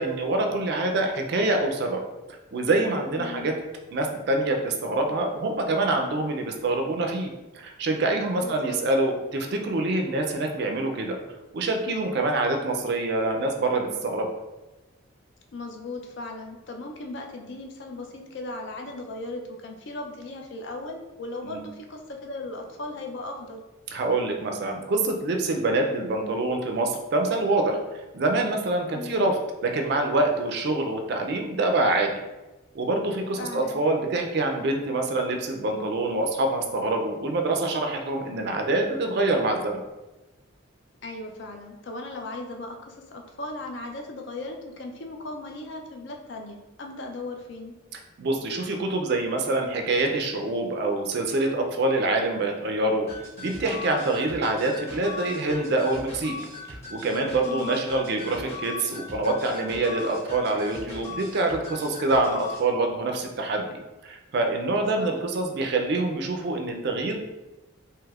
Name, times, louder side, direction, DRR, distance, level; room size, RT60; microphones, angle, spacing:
voice 1, 0.0-2.0 2.5-3.5 3.9-11.2 11.5-14.3 21.4-21.7 23.9-27.8 28.1-32.1 32.7-39.8 48.2-53.1 53.4-56.3 56.9-63.7 64.0-67.2, right 2 dB, 50° right, 3 dB, 0.4 m, -25 dB
voice 2, 3.2-3.6 8.4-8.8 15.5-23.6 28.9-29.3 33.4-33.8 41.0-47.8 57.4-57.8 65.0-65.1, left 2 dB, 60° left, 2 dB, 0.4 m, -37 dB
sound 1, 53.1-62.7, left 3 dB, 30° left, 1.1 m, -39 dB
3.3 x 2.8 x 2.3 m, 1.1 s
head